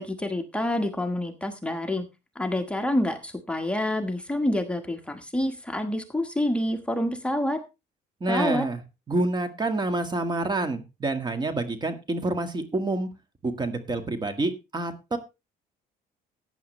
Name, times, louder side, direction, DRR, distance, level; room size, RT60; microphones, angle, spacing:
voice 1, 0.0-2.0 2.3-7.6 8.3-8.7, left 1 dB, 5° left, 5 dB, 1.4 m, -27 dB
voice 2, 8.2-8.8 9.1-13.1 13.4-15.2, right 2 dB, 25° right, 9 dB, 1.7 m, -28 dB
14.5 x 9.4 x 3.2 m, 0.26 s
cardioid pair, 110°, 17 cm